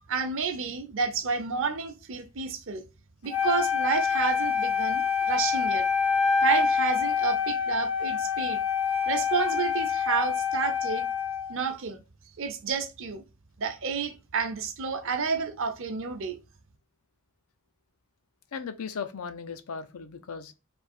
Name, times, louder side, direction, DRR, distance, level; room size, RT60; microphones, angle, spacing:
voice 1, 0.1-2.8 3.2-5.8 6.4-8.6 9.1-11.1 11.5-12.0 12.4-13.2 13.6-16.4, right 5 dB, 60° right, 0.8 m, -30 dB
Wind instrument woodwind instrument, 3.3-11.6, left 6 dB, 25° left, 0.5 m, -26 dB
voice 2, 18.5-20.5, left 6 dB, 75° left, 0.6 m, -37 dB
3.5 x 2.8 x 4.3 m
head